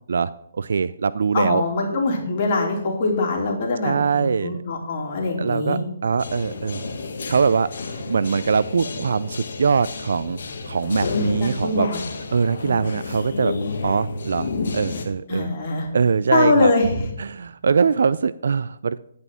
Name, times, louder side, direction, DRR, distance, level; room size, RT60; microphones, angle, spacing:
voice 1, 0.1-1.6 3.8-4.6 5.4-6.9 7.3-7.7 8.0-10.4 10.6-11.9 12.3-13.5 13.8-15.5 15.9-16.7 17.2-19.0, right 5 dB, 75° right, 16 dB, 0.4 m, -22 dB
voice 2, 1.3-5.8 11.4-12.1 12.6-12.8 15.3-15.9 16.3-17.1, left 3 dB, 45° left, 0 dB, 3.0 m, -23 dB
sound 1, 6.2-15.0, left 4 dB, 65° left, 1.8 m, -30 dB
10.5 x 5.6 x 7.4 m, 0.74 s
hypercardioid pair, 155°, 0 cm